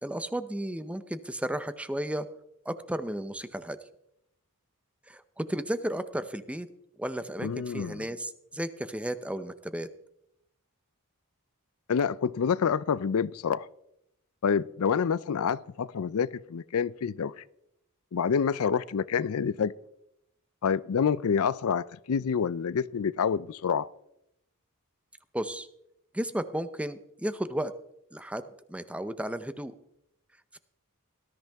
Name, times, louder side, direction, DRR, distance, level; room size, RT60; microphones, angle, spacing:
voice 1, 0.0-2.3 2.7-3.8 5.1-6.7 7.0-9.9 25.3-25.7 26.1-27.7 28.1-29.7 30.5-30.6, right 1 dB, 5° right, 0.7 m, -33 dB
voice 2, 7.4-8.1 11.9-13.7 14.4-17.4 18.1-19.7 20.6-23.9, left 6 dB, 75° left, 0.4 m, -27 dB
19.0 x 13.5 x 3.5 m
head